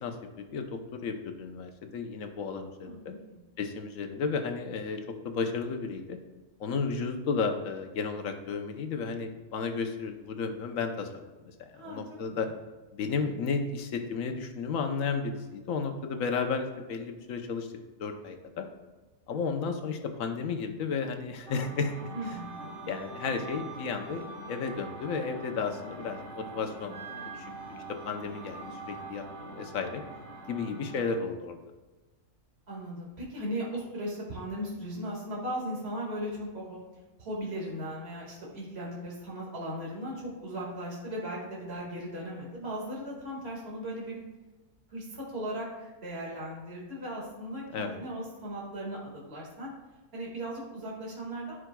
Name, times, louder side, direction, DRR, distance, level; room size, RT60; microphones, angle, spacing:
voice 1, 0.0-3.1 3.6-6.2 6.6-12.5 12.9-17.7 18.0-18.7 19.3-21.9 22.9-30.0 30.5-31.6 47.7-47.9, left 5 dB, 75° left, 5 dB, 1.2 m, -33 dB
voice 2, 2.6-3.4 11.7-12.0 12.3-12.5 22.1-22.7 30.6-30.8 32.7-36.8 37.2-44.2 44.9-49.7 50.1-51.6, right 1 dB, 50° right, -4 dB, 2.2 m, -37 dB
sound 1, 21.5-31.3, right 2 dB, 85° right, 2.6 m, -44 dB
Wind instrument woodwind instrument, 22.2-25.2 25.6-26.4 26.9-29.1, right 4 dB, 15° right, 0.8 m, -49 dB
14.5 x 5.0 x 2.3 m, 1.2 s
omnidirectional pair, 1.4 m